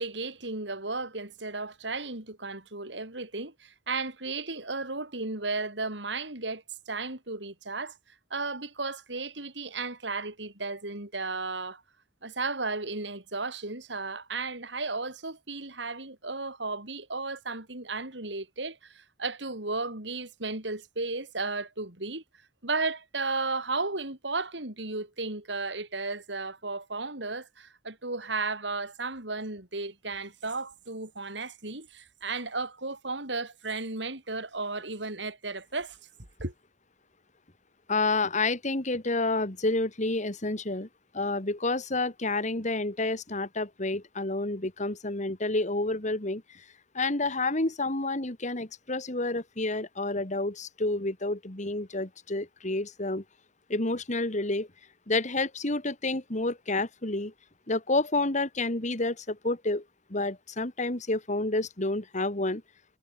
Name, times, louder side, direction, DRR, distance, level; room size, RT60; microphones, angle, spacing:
voice 1, 0.0-8.0 8.3-11.8 12.2-22.2 22.6-36.0 36.4-36.5, right 3 dB, 75° right, 5.2 m, -34 dB
voice 2, 37.9-40.9 41.1-46.6 46.9-53.2 53.7-54.7 55.1-57.3 57.7-59.8 60.1-62.6, left 2 dB, 40° left, 2.4 m, -29 dB
head